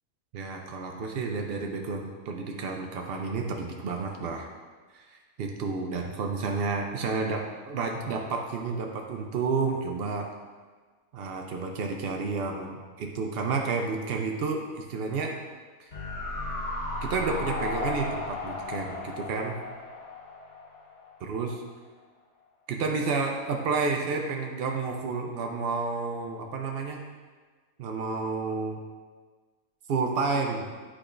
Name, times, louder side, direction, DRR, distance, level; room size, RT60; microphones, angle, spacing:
voice 1, 0.3-4.5 4.9-10.3 11.1-15.4 15.8-15.9 17.0-19.6 21.2-21.6 22.7-27.0 27.8-28.8 29.9-30.7, right 4 dB, 85° right, 2 dB, 0.5 m, -30 dB
sound 1, 15.9-21.2 21.4-21.5, left 2 dB, 45° left, 1.8 m, -35 dB
8.6 x 4.9 x 2.5 m, 1.4 s
omnidirectional pair, 1.7 m